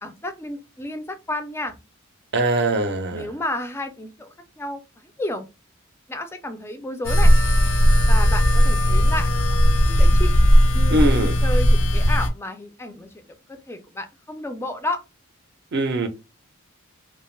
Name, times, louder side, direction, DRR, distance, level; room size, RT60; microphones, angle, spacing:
voice 1, 0.0-1.8 3.1-5.4 6.1-7.3 8.1-9.3 9.9-10.3 10.7-11.1 11.4-13.2 13.5-15.0, left 1 dB, 10° left, 0.3 m, -31 dB
voice 2, 2.3-3.3 10.9-11.4 15.7-16.1, right 2 dB, 50° right, 0.5 m, -22 dB
sound 1, 7.0-12.3, equal, 70° left, 0.5 m, -16 dB
2.4 x 2.2 x 3.1 m
head